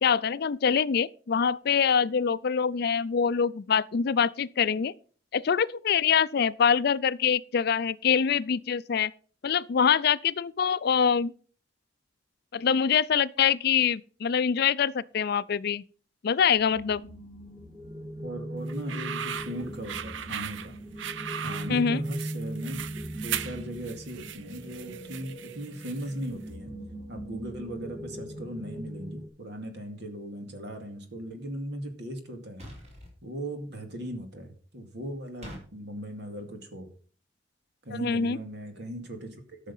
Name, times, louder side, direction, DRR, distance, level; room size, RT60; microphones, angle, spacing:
voice 1, 0.0-4.9 5.3-9.1 9.4-11.3 12.5-15.8 16.2-17.0 21.7-22.0 38.0-38.4, left 7 dB, 60° left, 0.4 m, -24 dB
sound 1, 16.5-29.3, right 1 dB, 15° right, 2.0 m, -39 dB
voice 2, 18.2-20.8 21.4-22.8 23.1-26.7 27.1-32.6 33.2-36.9 37.8-39.7, right 1 dB, 65° right, 2.3 m, -38 dB
sound 2, 18.7-26.3, right 9 dB, 90° right, 0.6 m, -38 dB
sound 3, 32.6-33.1 35.4-35.6, equal, 35° right, 4.7 m, -43 dB
13.0 x 6.5 x 5.5 m
head